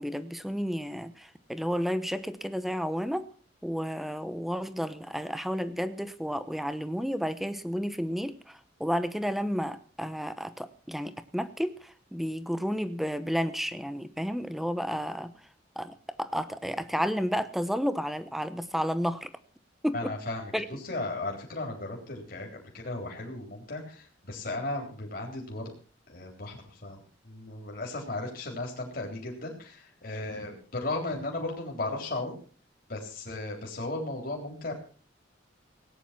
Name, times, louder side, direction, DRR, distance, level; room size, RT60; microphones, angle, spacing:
voice 1, 0.0-3.2 3.6-15.3 15.8-19.3 19.8-20.1 20.5-20.7, equal, ahead, 12 dB, 0.9 m, -31 dB
voice 2, 19.9-25.8 26.1-32.4 32.9-34.7, left 2 dB, 50° left, 0 dB, 3.7 m, -36 dB
18.0 x 10.0 x 5.9 m, 0.40 s
head